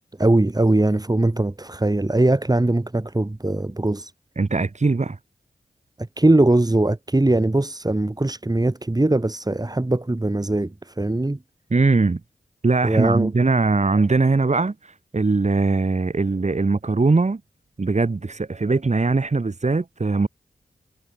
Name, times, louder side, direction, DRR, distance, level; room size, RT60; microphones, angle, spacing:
voice 1, 0.2-4.1 6.2-11.4 12.8-13.3, right 2 dB, 25° right, 4.7 m, -20 dB
voice 2, 4.4-5.2 11.7-12.2 12.6-17.4 17.8-20.3, right 3 dB, 45° right, 3.4 m, -21 dB
cardioid pair, 55°, 16 cm